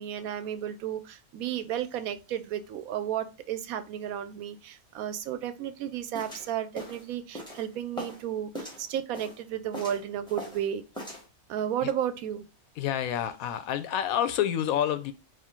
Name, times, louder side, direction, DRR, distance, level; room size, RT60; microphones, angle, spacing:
voice 1, 0.0-10.8 11.5-12.4, right 10 dB, 80° right, 1.0 m, -33 dB
sound 1, 6.1-8.2 8.5-9.4 9.7-10.7 10.9-11.3, equal, 5° left, 1.4 m, -40 dB
voice 2, 12.8-15.1, left 10 dB, 80° left, 1.0 m, -28 dB
4.4 x 2.6 x 3.7 m
omnidirectional pair, 1.5 m